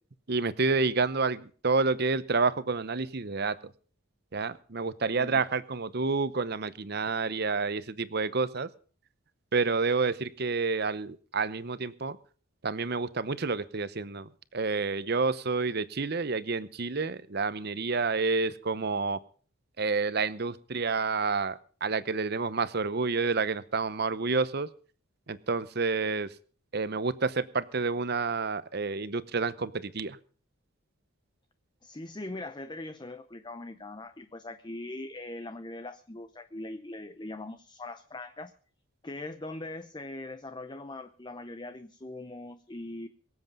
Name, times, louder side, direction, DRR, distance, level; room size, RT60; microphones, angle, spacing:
voice 1, 0.3-3.6 4.3-8.7 9.5-12.2 12.6-19.2 19.8-24.7 25.3-26.3 26.7-30.2, right 4 dB, 50° right, 15 dB, 0.8 m, -29 dB
voice 2, 5.1-5.4 31.8-38.5 39.0-43.1, left 2 dB, 20° left, 10 dB, 0.6 m, -41 dB
23.5 x 7.9 x 5.3 m, 0.42 s
head